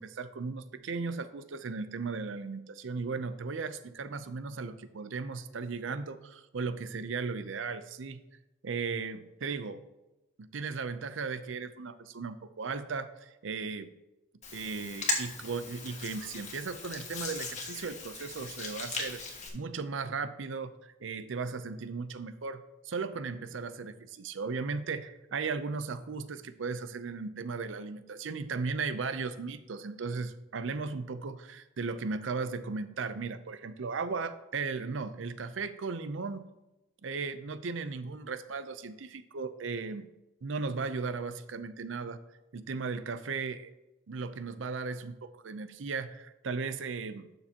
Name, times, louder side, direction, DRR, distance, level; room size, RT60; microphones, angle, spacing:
voice 1, 0.0-8.2 8.6-9.8 10.4-13.9 14.5-19.2 19.5-36.5 37.0-40.1 40.4-42.2 42.5-43.7 44.1-47.3, right 4 dB, 70° right, 13 dB, 0.6 m, -36 dB
Hands, 14.4-19.5, left 4 dB, 40° left, 1.4 m, -38 dB
11.5 x 6.7 x 2.9 m, 1.0 s
head